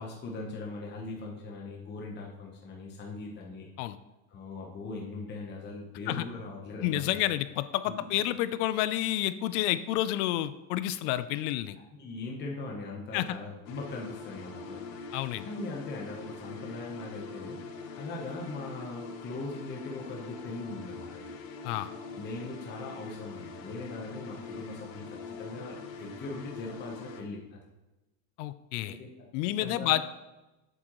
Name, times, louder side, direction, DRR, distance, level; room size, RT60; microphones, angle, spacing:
voice 1, 0.0-3.7 4.3-7.2 7.8-8.1 11.9-15.0 15.4-21.3 22.2-27.6 28.8-30.0, left 3 dB, 20° left, -1 dB, 1.0 m, -40 dB
voice 2, 6.8-11.8 13.1-13.4 15.1-15.5 21.6-21.9 28.4-29.0 29.3-30.0, left 14 dB, 65° left, 14 dB, 0.6 m, -29 dB
sound 1, 13.7-27.2, left 4 dB, 90° left, 1.2 m, -43 dB
7.8 x 7.6 x 3.0 m, 1.0 s
supercardioid pair, 145°, 48 cm